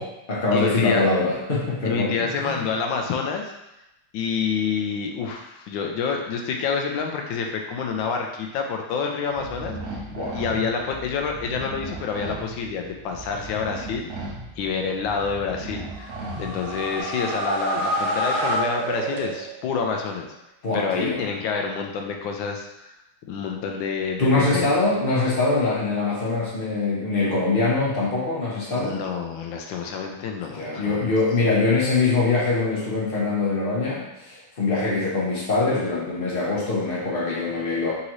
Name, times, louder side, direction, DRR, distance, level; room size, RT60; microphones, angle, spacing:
voice 1, 0.0-2.5 10.1-10.4 20.6-21.2 24.2-29.0 30.5-37.9, left 3 dB, 50° left, -6 dB, 0.7 m, -23 dB
voice 2, 0.5-1.1 1.8-3.5 4.1-9.8 10.3-20.3 20.7-22.9 23.3-24.7 28.8-31.1, left 5 dB, 75° left, 2 dB, 1.2 m, -28 dB
sound 1, 9.3-17.0, right 2 dB, 90° right, 0.6 m, -37 dB
sound 2, 15.9-19.7, right 1 dB, 70° right, 1.4 m, -27 dB
4.0 x 3.7 x 3.0 m, 0.91 s
omnidirectional pair, 2.3 m